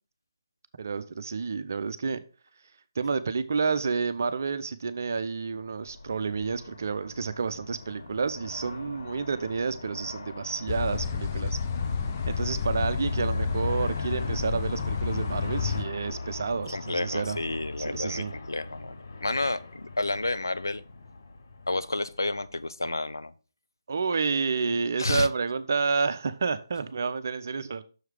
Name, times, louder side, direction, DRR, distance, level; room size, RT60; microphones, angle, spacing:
voice 1, 0.8-2.2 3.0-11.6 12.3-17.4 17.8-18.3 23.9-27.8, right 4 dB, 45° right, 0.6 m, -29 dB
Aircraft, 5.6-22.9, left 3 dB, 50° left, 0.9 m, -40 dB
sound 1, 10.7-15.8, left 6 dB, 30° left, 0.6 m, -30 dB
voice 2, 16.7-20.8 21.7-23.3 25.0-25.3, left 2 dB, 70° left, 0.5 m, -30 dB
6.5 x 4.7 x 4.8 m
figure-of-eight pair, 145°, 2 cm